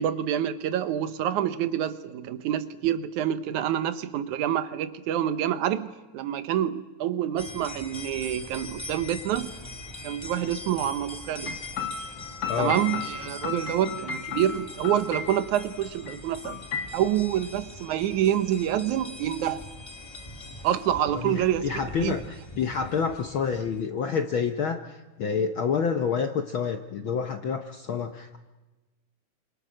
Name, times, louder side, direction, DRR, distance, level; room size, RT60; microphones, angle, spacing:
voice 1, 0.0-9.5 10.0-11.5 12.6-16.6 16.9-19.6 20.6-21.7 22.0-22.1, right 11 dB, 85° right, 12 dB, 2.4 m, -27 dB
sound 1, 7.4-23.8, left 2 dB, 10° left, 1.5 m, -42 dB
sound 2, 11.5-15.7 16.1-16.2 16.4-17.0, left 5 dB, 45° left, 1.9 m, -34 dB
voice 2, 21.1-28.4, left 6 dB, 65° left, 6 dB, 1.3 m, -28 dB
28.5 x 26.5 x 6.3 m, 1.2 s
omnidirectional pair, 3.4 m